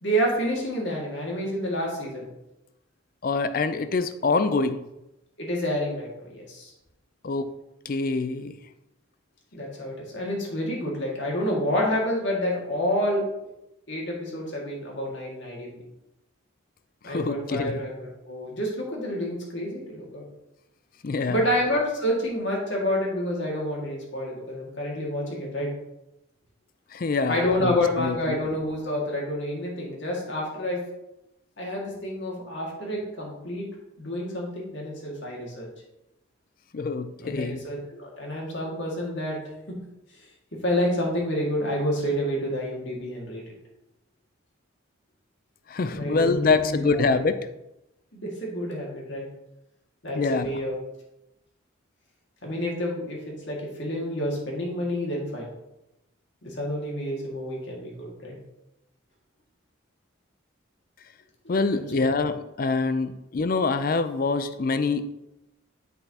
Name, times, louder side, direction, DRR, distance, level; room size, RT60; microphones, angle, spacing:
voice 1, 0.0-2.3 5.4-6.7 9.5-13.2 13.9-15.8 17.0-20.2 21.3-25.7 27.3-30.8 31.6-33.7 34.0-35.7 37.2-39.4 39.7-39.8 40.6-43.4 45.8-47.2 48.1-49.3 50.0-50.7 52.4-53.2 53.5-55.5 56.4-58.4 61.4-62.1, equal, 60° left, -2 dB, 1.9 m, -29 dB
voice 2, 3.2-4.8 7.2-7.5 7.8-8.5 17.0-17.8 21.0-21.4 26.9-28.4 36.7-37.6 45.7-47.4 50.1-50.6 61.5-65.1, left 4 dB, 45° left, 11 dB, 0.4 m, -25 dB
7.8 x 5.6 x 2.8 m, 0.90 s
head